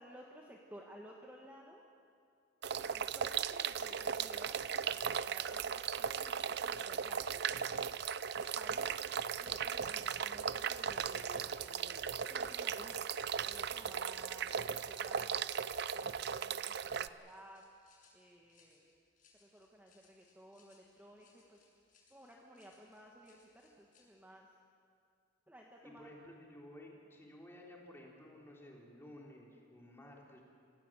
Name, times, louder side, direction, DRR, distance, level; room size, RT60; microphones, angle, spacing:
voice 1, 0.0-1.9 2.9-7.5 8.3-8.9 9.4-13.1 13.4-15.4 15.9-17.6 18.1-18.8 19.4-21.6 22.1-24.5 25.5-26.1, equal, 10° right, -1 dB, 1.5 m, -56 dB
sound 1, 2.6-17.1, right 7 dB, 55° right, 0.5 m, -37 dB
sound 2, 10.2-16.3 17.2-24.0, left 2 dB, 45° left, 7.5 m, -66 dB
voice 2, 14.2-14.6 25.8-30.4, left 1 dB, 10° left, -2 dB, 3.6 m, -55 dB
26.5 x 17.0 x 7.6 m, 2.3 s
head